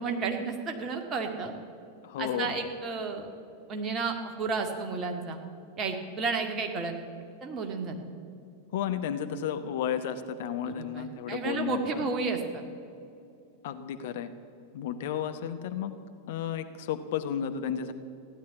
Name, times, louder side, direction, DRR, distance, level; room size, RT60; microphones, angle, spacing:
voice 1, 0.0-1.5 2.2-3.3 3.7-5.4 5.8-6.9 7.4-8.0 10.7-12.6, right 4 dB, 30° right, 3 dB, 1.9 m, -32 dB
voice 2, 2.0-2.6 8.7-12.0 13.6-14.3 14.7-15.9 16.3-17.9, left 9 dB, 55° left, 9 dB, 0.9 m, -33 dB
15.5 x 10.5 x 8.3 m, 2.6 s
figure-of-eight pair, 90°, 0 cm